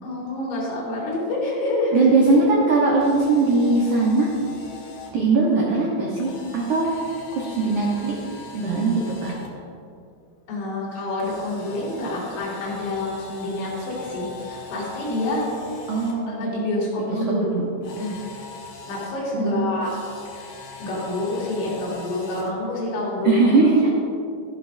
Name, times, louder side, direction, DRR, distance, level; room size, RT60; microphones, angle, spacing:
voice 1, 0.0-2.0 10.5-15.4 15.9-17.6 18.0-18.2 18.9-19.9 20.8-23.4 23.8-23.9, left 2 dB, 85° left, -6 dB, 5.6 m, -27 dB
voice 2, 1.9-4.3 5.1-6.9 7.3-8.1 8.5-9.3 15.9-16.6 17.0-17.7 19.3-19.8 23.2-23.9, right 3 dB, 80° right, -3 dB, 1.7 m, -20 dB
Camera, 2.9-5.1 6.2-9.5 11.2-16.1 17.8-19.1 19.8-22.5, left 4 dB, 65° left, 3.0 m, -40 dB
14.0 x 11.5 x 2.7 m, 2.5 s
omnidirectional pair, 5.3 m